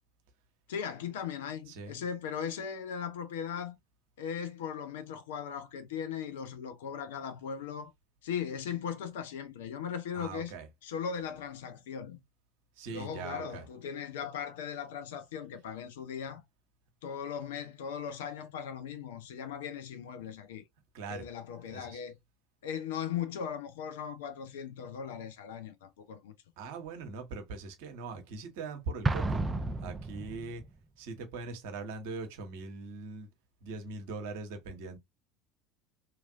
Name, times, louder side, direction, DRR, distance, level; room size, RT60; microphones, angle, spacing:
voice 1, 0.7-3.8 4.2-7.9 8.2-10.5 10.8-12.2 12.9-16.4 17.0-20.6 21.1-22.2 22.6-26.3, left 7 dB, 65° left, 0.4 m, -38 dB
voice 2, 10.1-10.7 12.8-13.6 20.9-21.2 21.7-22.0 26.6-29.4 29.8-30.6 31.0-33.3 33.6-35.0, right 3 dB, 60° right, 0.8 m, -41 dB
Explosion, 29.0-30.7, right 2 dB, 20° right, 0.3 m, -32 dB
2.9 x 2.5 x 2.4 m
figure-of-eight pair, 70°, 0 cm